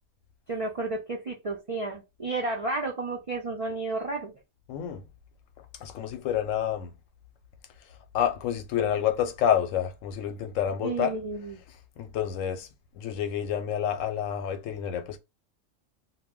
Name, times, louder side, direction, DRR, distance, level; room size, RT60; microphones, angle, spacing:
voice 1, 0.5-4.3 10.8-11.6, right 3 dB, 60° right, 0.3 m, -32 dB
voice 2, 4.7-5.0 5.8-6.9 8.1-11.2 12.0-12.7 12.9-15.2, left 9 dB, 85° left, 1.0 m, -28 dB
2.2 x 2.1 x 3.5 m
omnidirectional pair, 1.3 m